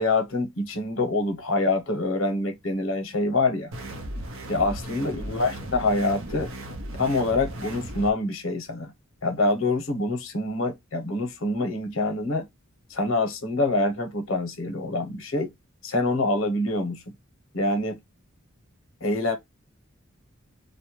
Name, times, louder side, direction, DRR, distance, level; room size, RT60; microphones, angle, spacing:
voice 1, 0.0-3.7 4.5-6.5 7.0-8.9 9.2-12.5 12.9-15.5 15.8-17.1 17.5-18.0 19.0-19.4, left 2 dB, 70° left, 0.7 m, -26 dB
sound 1, 3.7-8.1, right 1 dB, 75° right, 0.6 m, -36 dB
2.1 x 2.0 x 2.9 m
head